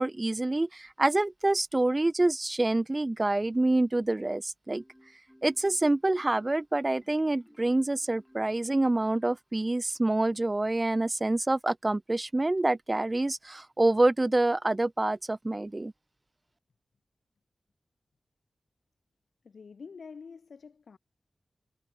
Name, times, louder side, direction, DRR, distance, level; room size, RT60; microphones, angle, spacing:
voice 1, 0.0-4.8 5.4-15.9, right 2 dB, 30° right, 0.4 m, -27 dB
Marimba xylophone, 4.7-9.9, equal, ahead, 7.6 m, -60 dB
voice 2, 19.4-21.0, left 5 dB, 80° left, 4.2 m, -47 dB
cardioid pair, 60°, 0 cm